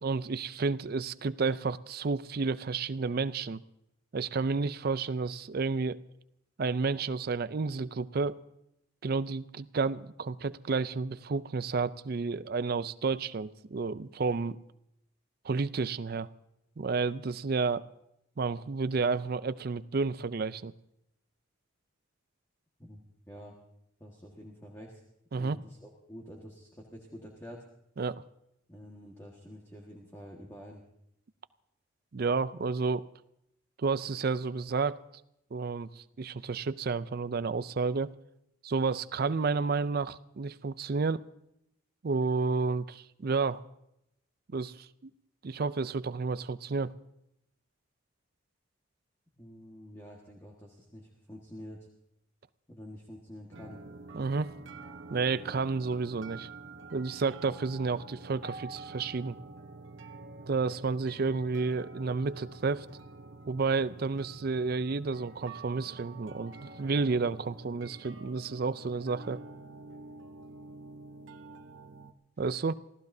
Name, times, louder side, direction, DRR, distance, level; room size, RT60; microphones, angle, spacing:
voice 1, 0.0-3.6 4.1-6.0 6.6-8.4 9.0-14.6 15.4-16.3 16.8-17.9 18.4-20.7 25.3-25.6 28.0-28.2 32.1-33.1 33.8-35.0 35.5-38.1 38.6-41.2 42.0-43.6 44.5-44.9 45.4-46.9 54.1-54.5 55.1-56.5 56.9-59.4 60.5-62.9 63.5-69.4 72.4-72.8, right 4 dB, 50° right, 0.4 m, -31 dB
voice 2, 22.8-23.6 24.0-25.0 25.4-27.6 28.7-30.8 49.4-51.9 52.7-53.8, equal, 15° left, 1.6 m, -48 dB
sound 1, 53.5-72.1, right 3 dB, 65° right, 1.0 m, -48 dB
28.0 x 15.0 x 2.7 m
head